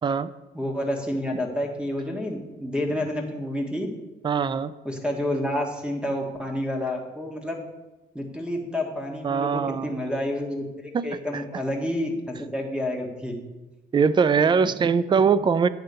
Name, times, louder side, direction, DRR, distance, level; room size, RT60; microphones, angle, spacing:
voice 1, 0.5-3.9 4.8-7.6 8.1-13.3, left 1 dB, 5° right, 2 dB, 1.5 m, -29 dB
voice 2, 4.2-4.7 9.2-10.1 10.9-11.6 13.9-15.7, right 6 dB, 25° right, 16 dB, 0.3 m, -22 dB
9.1 x 3.7 x 6.7 m, 1.1 s
cardioid pair, 90°, 20 cm